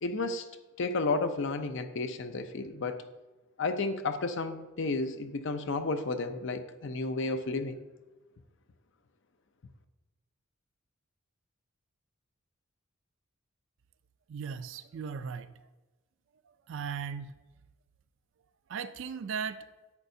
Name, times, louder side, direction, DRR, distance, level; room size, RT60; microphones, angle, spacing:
voice 1, 0.0-0.4 0.8-3.0 3.6-7.8, left 3 dB, 60° left, 9 dB, 0.6 m, -32 dB
voice 2, 14.3-15.5 16.7-17.3 18.7-19.6, right 6 dB, 60° right, 12 dB, 0.4 m, -37 dB
10.5 x 8.7 x 2.7 m, 1.1 s
head